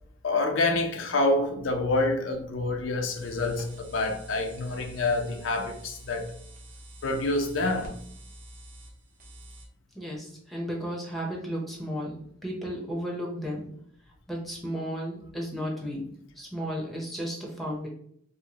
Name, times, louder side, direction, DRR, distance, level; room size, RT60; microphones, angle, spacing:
voice 1, 0.2-6.3 7.0-8.0, left 2 dB, 80° left, 0.5 m, -27 dB
sound 1, 3.1-9.7, right 1 dB, 40° right, 0.8 m, -47 dB
voice 2, 9.9-13.7 14.3-16.0 16.4-17.9, equal, ahead, 0.8 m, -34 dB
4.7 x 2.1 x 2.8 m
head